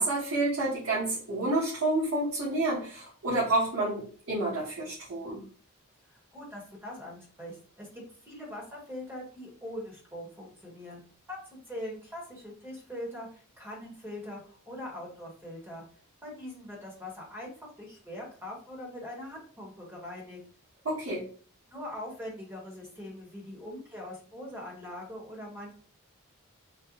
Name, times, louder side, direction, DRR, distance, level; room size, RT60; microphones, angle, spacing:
voice 1, 0.0-5.4 20.8-21.3, right 2 dB, 75° right, -9 dB, 1.4 m, -29 dB
voice 2, 6.1-11.0 11.3-11.4 11.7-15.8 16.2-20.4 21.7-25.7, left 1 dB, 10° right, -3 dB, 1.3 m, -42 dB
3.8 x 2.3 x 2.9 m, 0.43 s
head